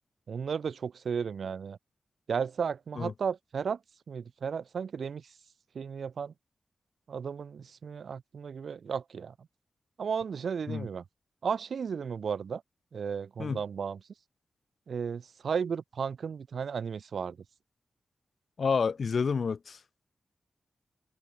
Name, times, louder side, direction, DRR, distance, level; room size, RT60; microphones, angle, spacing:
voice 1, 0.3-1.8 2.3-3.8 4.1-5.2 5.7-6.3 7.1-9.3 10.0-11.0 11.4-12.6 12.9-14.0 14.9-17.4, right 6 dB, 80° right, 1.6 m, -34 dB
voice 2, 18.6-19.8, left 5 dB, 65° left, 4.1 m, -29 dB
cardioid pair, 60°, 0 cm